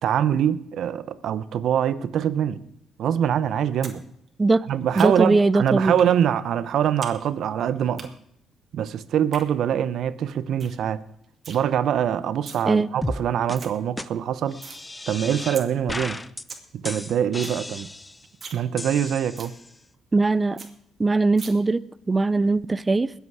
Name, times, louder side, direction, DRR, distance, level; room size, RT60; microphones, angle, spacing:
voice 1, 0.0-2.6 3.0-4.0 4.7-8.1 8.7-11.0 11.5-14.6 15.1-16.2 16.7-17.9 18.5-19.5, right 9 dB, 70° right, 0.8 m, -24 dB
sound 1, 3.8-4.0 4.3-5.4 6.0-6.1 6.5-7.2 7.4-8.0 9.1-9.4 9.9-10.0 10.3-10.4 10.6-10.8 11.1-11.6 12.2-12.6 13.1-13.2 13.3-13.7 14.1-14.8 15.2-15.3 15.5-15.7 16.0-16.1 16.3-16.6 17.0-17.1 17.3-17.6 17.9-18.0 18.3-18.6 18.9-19.0 19.4-19.5 19.9-20.0 20.2-20.3 20.6-20.7 21.4-21.5, right 5 dB, 45° right, 2.3 m, -40 dB
voice 2, 5.0-6.0 12.6-12.9 20.1-20.6 21.0-23.1, right 3 dB, 25° right, 0.5 m, -20 dB
sound 2, 13.0-13.2 13.5-13.6 14.0-14.1 14.5-15.6 15.9-16.4 16.8-18.2 18.8-19.7, left 2 dB, 15° left, 0.7 m, -34 dB
21.0 x 8.3 x 4.9 m
cardioid pair, 90°, 0 cm